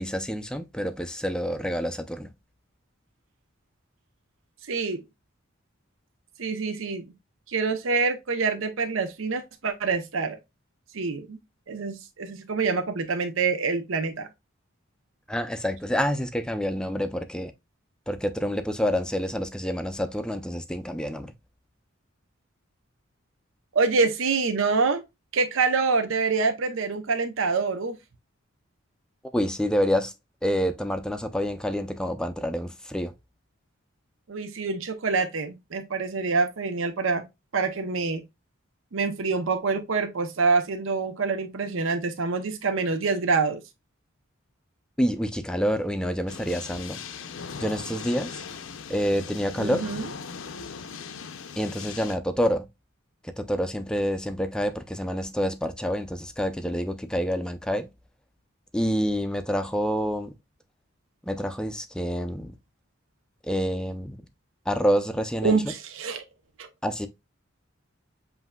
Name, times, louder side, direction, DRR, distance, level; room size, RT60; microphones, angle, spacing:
voice 1, 0.0-2.3 15.3-17.5 18.1-21.3 29.3-30.1 30.4-33.1 45.0-47.0 47.6-48.4 48.9-49.9 51.6-52.7 53.4-57.9 58.7-60.3 61.3-62.5 63.4-64.2 64.7-65.5 66.8-67.1, equal, 5° left, 0.4 m, -27 dB
voice 2, 4.7-5.0 6.4-7.1 7.5-10.4 10.9-11.4 11.7-14.3 23.7-25.0 25.3-28.0 34.3-37.2 37.5-38.2 38.9-43.6 49.6-50.1 65.4-66.2 66.6-66.7, right 4 dB, 75° right, 0.7 m, -26 dB
sound 1, 46.3-52.1, left 6 dB, 70° left, 0.5 m, -39 dB
7.7 x 2.7 x 2.2 m
head